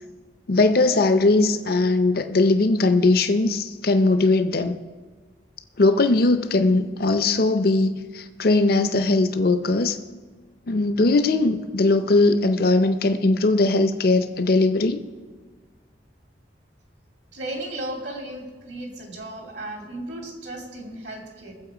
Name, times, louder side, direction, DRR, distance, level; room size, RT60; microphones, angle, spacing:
voice 1, 0.5-4.8 5.8-10.0 10.7-15.0, left 2 dB, 55° left, 0.6 m, -20 dB
voice 2, 17.3-21.6, right 1 dB, 65° right, 2.7 m, -35 dB
22.0 x 7.6 x 4.9 m
head